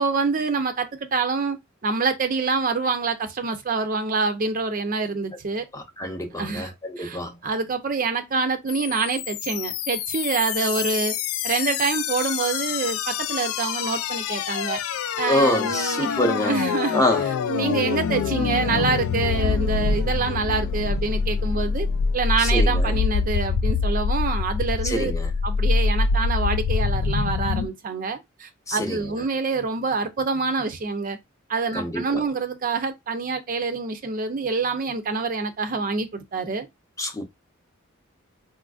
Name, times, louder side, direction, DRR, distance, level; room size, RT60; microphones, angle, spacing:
voice 1, 0.0-1.6 1.8-5.6 6.4-6.7 7.0-11.1 11.4-14.8 15.2-16.2 16.4-17.0 17.5-21.9 22.1-25.1 25.4-31.2 31.5-36.7, right 4 dB, 40° right, 0.5 m, -26 dB
voice 2, 5.7-7.4 15.3-16.6 16.9-17.2 22.4-23.0 24.8-25.3 28.7-29.1 31.7-32.2 37.0-37.2, left 1 dB, 15° left, 0.6 m, -26 dB
sound 1, 8.7-27.7, left 5 dB, 85° left, 0.3 m, -25 dB
4.0 x 2.5 x 2.3 m
head